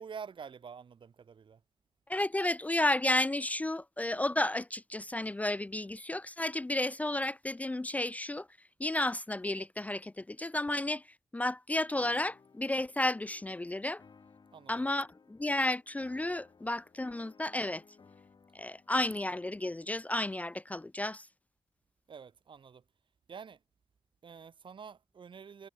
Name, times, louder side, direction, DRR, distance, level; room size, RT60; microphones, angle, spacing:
voice 1, 0.0-1.6 14.5-14.7 22.1-22.8 23.3-23.6 24.2-25.7, right 6 dB, 70° right, 1.1 m, -47 dB
voice 2, 2.1-8.5 8.8-11.0 11.3-14.0 14.7-17.8 18.5-21.3, left 1 dB, 15° left, 0.3 m, -32 dB
sound 1, 12.0-19.8, left 5 dB, 55° left, 3.0 m, -60 dB
wide cardioid pair, 90°, 9 cm